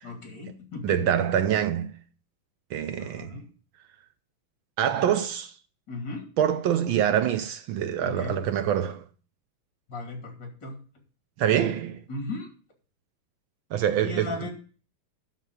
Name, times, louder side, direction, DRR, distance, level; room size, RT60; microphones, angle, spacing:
voice 1, 0.0-1.0 3.0-3.5 5.9-6.3 8.0-8.4 9.9-10.8 12.1-12.5 14.0-14.5, left 3 dB, 55° left, 3.4 m, -36 dB
voice 2, 0.8-2.0 2.7-3.4 4.8-5.6 6.4-9.0 11.4-12.0 13.7-14.5, right 9 dB, 70° right, 1.4 m, -25 dB
11.5 x 4.4 x 8.0 m
omnidirectional pair, 2.4 m